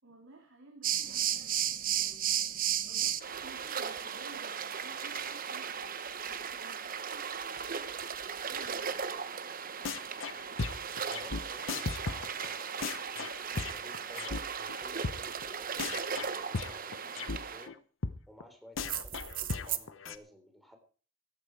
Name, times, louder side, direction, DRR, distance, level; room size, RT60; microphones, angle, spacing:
voice 1, 0.0-2.2 2.6-6.0 6.4-8.0 8.4-9.1, right 2 dB, 80° right, 0 dB, 3.6 m, -55 dB
sound 1, 0.8-17.7 18.8-19.8, right 8 dB, 45° right, 1.1 m, -36 dB
sound 2, 9.8-10.3 10.6-14.4 14.7-14.8 15.0-15.2 15.4-15.5 15.8-17.4 17.6-17.7 18.0-18.1 18.4-18.5 18.8-20.2, left 4 dB, 80° left, 1.0 m, -36 dB
voice 2, 11.0-13.0 13.5-15.9 16.5-17.8 18.3-20.8, equal, ahead, 5 dB, 3.6 m, -54 dB
16.0 x 12.0 x 4.7 m, 0.39 s
head